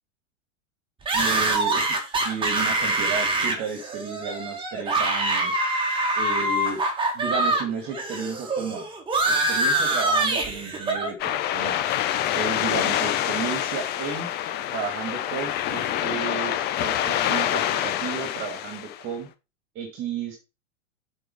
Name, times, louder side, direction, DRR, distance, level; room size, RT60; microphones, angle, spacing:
sound 1, 1.1-7.6 7.9-11.1, right 2 dB, 15° right, 1.9 m, -24 dB
voice 1, 1.1-2.0 2.2-5.6 6.2-6.8 7.1-8.9 9.3-11.8 12.3-14.3 14.7-19.3 19.8-20.4, right 6 dB, 30° right, 5 dB, 2.0 m, -33 dB
sound 2, 11.2-19.0, left 11 dB, 25° left, 0.8 m, -26 dB
8.0 x 4.6 x 4.8 m, 0.28 s
figure-of-eight pair, 100°, 38 cm